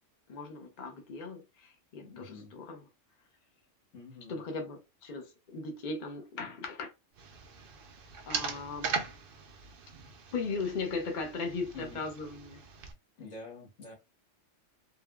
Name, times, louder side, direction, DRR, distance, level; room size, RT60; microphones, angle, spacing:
voice 1, 0.3-2.8 4.3-6.9 8.3-9.0 10.3-12.6, left 4 dB, 45° left, 0.8 m, -38 dB
voice 2, 2.0-2.6 3.9-4.4 11.7-12.0 13.2-13.9, left 3 dB, 85° left, 1.7 m, -47 dB
sound 1, 7.2-12.9, right 5 dB, 60° right, 0.7 m, -40 dB
3.6 x 2.2 x 2.2 m
omnidirectional pair, 1.2 m